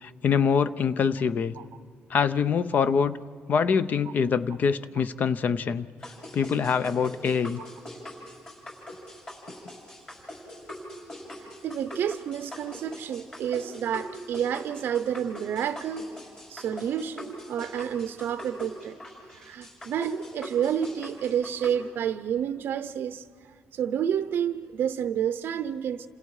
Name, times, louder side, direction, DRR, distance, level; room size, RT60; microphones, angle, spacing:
voice 1, 0.0-1.5 2.1-3.2 3.5-5.9 6.3-7.6, left 6 dB, 45° left, 0.7 m, -24 dB
sound 1, 6.0-21.7, left 1 dB, 25° left, 6.5 m, -42 dB
voice 2, 11.4-16.1 16.5-19.0 19.3-26.1, right 9 dB, 60° right, 0.6 m, -30 dB
30.0 x 27.5 x 4.8 m
cardioid pair, 160°, 4 cm